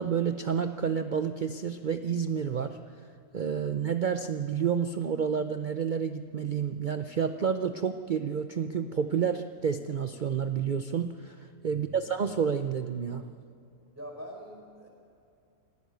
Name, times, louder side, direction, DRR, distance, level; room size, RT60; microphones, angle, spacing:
voice 1, 0.0-2.8 3.3-13.2, right 7 dB, 90° right, 9 dB, 0.4 m, -30 dB
voice 2, 11.7-12.0 13.9-14.9, equal, 10° right, 0 dB, 4.6 m, -44 dB
25.5 x 15.5 x 6.7 m, 2.5 s
omnidirectional pair, 1.7 m